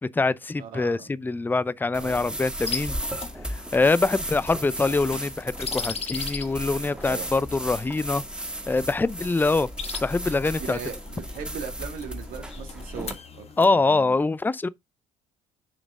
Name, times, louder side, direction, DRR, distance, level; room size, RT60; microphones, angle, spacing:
voice 1, 0.0-3.0 3.5-8.2 8.7-9.7 10.0-10.8 13.6-14.7, left 3 dB, 10° left, 0.5 m, -24 dB
voice 2, 0.6-1.1 2.0-2.3 6.9-7.3 10.6-14.1, right 7 dB, 65° right, 1.8 m, -39 dB
sound 1, 1.9-13.1, equal, 5° right, 2.1 m, -35 dB
sound 2, 2.7-13.7, left 6 dB, 40° left, 1.3 m, -40 dB
7.0 x 5.1 x 3.6 m
hypercardioid pair, 55°, 16 cm